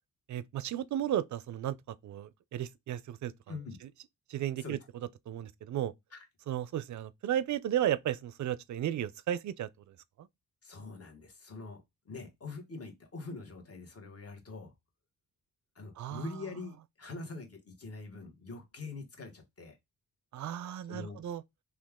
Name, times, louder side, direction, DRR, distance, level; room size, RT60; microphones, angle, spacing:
voice 1, 0.3-1.8 2.0-3.3 4.3-4.8 5.3-5.9 6.5-10.3 16.0-16.3 20.3-21.4, right 11 dB, 55° right, 0.4 m, -34 dB
voice 2, 3.5-3.8 4.6-4.8 6.1-6.3 10.6-14.7 15.7-19.8 20.9-21.2, left 3 dB, 45° left, 1.4 m, -44 dB
2.9 x 2.4 x 3.5 m
cardioid pair, 65°, 35 cm